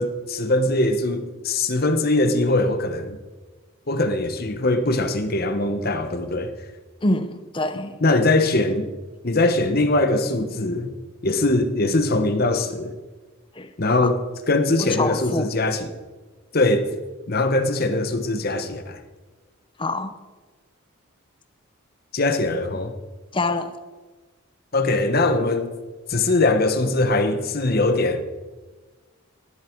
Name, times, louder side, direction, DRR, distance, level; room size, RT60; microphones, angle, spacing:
voice 1, 0.0-3.2 3.9-6.5 8.0-8.9 9.2-10.9 11.2-12.9 13.8-14.2 14.5-15.9 16.5-16.9 17.3-19.0 22.1-22.9 24.7-25.7 26.1-28.2, left 2 dB, 45° left, 8 dB, 1.1 m, -21 dB
voice 2, 7.0-8.0 13.6-13.7 14.0-14.1 14.8-15.5 19.8-20.1 23.3-23.7, left 2 dB, 25° left, 11 dB, 0.8 m, -25 dB
17.5 x 11.5 x 4.6 m, 1.3 s
head